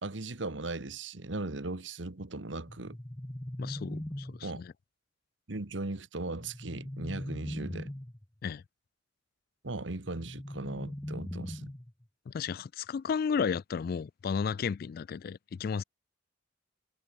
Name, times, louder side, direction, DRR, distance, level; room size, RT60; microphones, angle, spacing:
voice 1, 0.0-3.0 4.4-4.6 5.5-7.9 9.6-11.7, right 2 dB, 75° right, 1.6 m, -38 dB
sound 1, 2.7-4.7 6.4-8.3 10.1-12.0, left 1 dB, 15° left, 0.9 m, -40 dB
voice 2, 3.6-4.7 8.4-8.6 12.3-15.8, left 6 dB, 50° left, 0.3 m, -33 dB
head